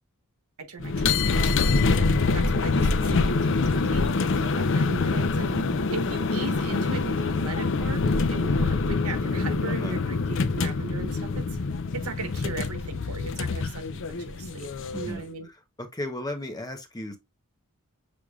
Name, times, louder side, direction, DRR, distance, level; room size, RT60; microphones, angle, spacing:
voice 1, 0.6-1.5 1.9-4.1 4.3-5.6 5.9-11.4 11.9-15.5, right 4 dB, 75° right, 1.4 m, -38 dB
sound 1, 0.8-15.2, left 3 dB, 60° left, 0.6 m, -25 dB
voice 2, 5.4-5.7 9.7-9.9 14.9-15.2 15.8-17.2, left 1 dB, 15° left, 0.8 m, -35 dB
6.3 x 3.5 x 2.3 m
head